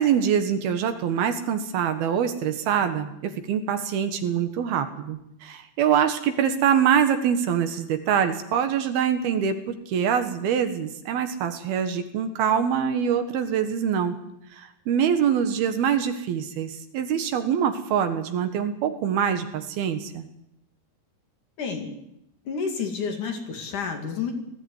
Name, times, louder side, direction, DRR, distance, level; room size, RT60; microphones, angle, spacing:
voice 1, 0.0-14.2 14.6-20.2, right 8 dB, 70° right, 8 dB, 3.2 m, -24 dB
voice 2, 21.6-21.9 22.5-24.3, left 6 dB, 55° left, 4 dB, 3.6 m, -30 dB
19.5 x 15.5 x 9.7 m, 0.80 s
omnidirectional pair, 4.7 m